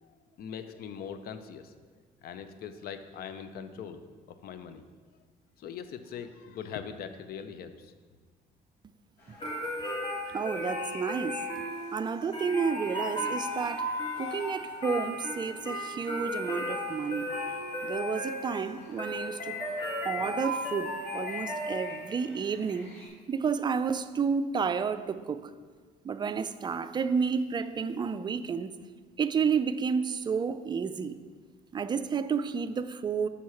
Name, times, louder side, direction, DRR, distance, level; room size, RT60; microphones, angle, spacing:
voice 1, 0.0-1.7 2.2-4.0 4.3-4.9 5.6-7.9, left 7 dB, 65° left, 10 dB, 0.6 m, -41 dB
sound 1, 9.2-23.1, left 2 dB, 80° left, 2.0 m, -51 dB
sound 2, 9.4-22.2, left 1 dB, 30° left, 2.1 m, -35 dB
voice 2, 10.3-11.4 11.9-13.9 14.2-17.3 17.8-19.5 20.0-22.9 23.3-25.5 26.0-28.7 29.2-31.1 31.7-33.3, right 6 dB, 25° right, 11 dB, 0.4 m, -31 dB
7.0 x 4.7 x 5.7 m, 1.5 s
cardioid pair, 110°, 17 cm